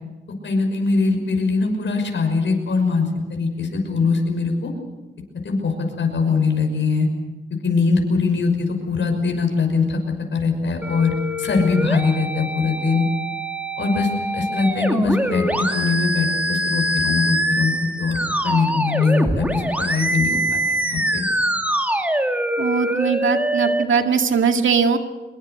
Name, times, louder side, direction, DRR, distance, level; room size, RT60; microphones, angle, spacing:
voice 1, 0.4-4.7 5.4-7.1 7.6-10.0 10.3-11.1 11.4-13.1 13.8-18.2 18.4-20.6 20.9-21.2, left 4 dB, 75° left, 3 dB, 6.0 m, -21 dB
sound 1, 10.8-23.8, right 1 dB, 10° right, 2.5 m, -24 dB
voice 2, 22.6-25.0, right 6 dB, 85° right, 5 dB, 2.2 m, -20 dB
25.0 x 22.5 x 6.7 m, 1.1 s
wide cardioid pair, 95°, 20 cm